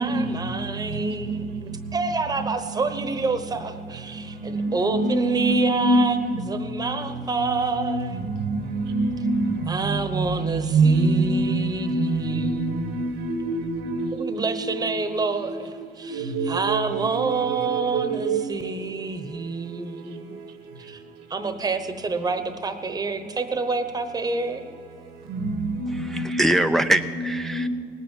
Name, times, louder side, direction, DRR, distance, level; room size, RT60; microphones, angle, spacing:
voice 1, 0.0-8.3 9.7-13.1 14.1-20.4 20.8-21.0 21.3-24.7, right 3 dB, 20° right, 1.0 m, -28 dB
voice 2, 4.5-6.0 7.7-7.9 8.5-8.6 8.9-9.3 10.7-14.1 16.2-16.8 17.7-18.4 25.7-25.9 26.1-26.6 27.5-27.7, right 2 dB, 90° right, 1.6 m, -24 dB
voice 3, 25.9-27.7, right 1 dB, ahead, 0.4 m, -23 dB
18.5 x 9.1 x 7.3 m
cardioid pair, 110°, 17 cm